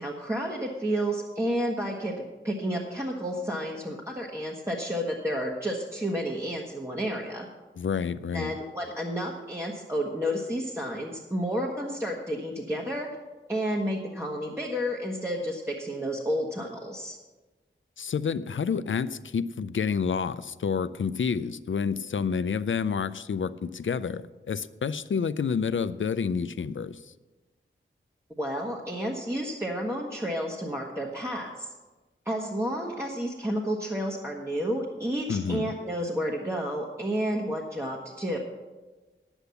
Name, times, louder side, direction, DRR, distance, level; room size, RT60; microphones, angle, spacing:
voice 1, 0.0-7.5 8.3-13.1 13.5-17.2 28.4-31.7 32.2-38.4, equal, 15° right, -2 dB, 1.3 m, -31 dB
voice 2, 7.8-8.5 18.0-27.1 35.3-35.7, left 6 dB, 70° left, 14 dB, 0.5 m, -29 dB
9.9 x 8.0 x 6.9 m, 1.2 s
wide cardioid pair, 70°, 20 cm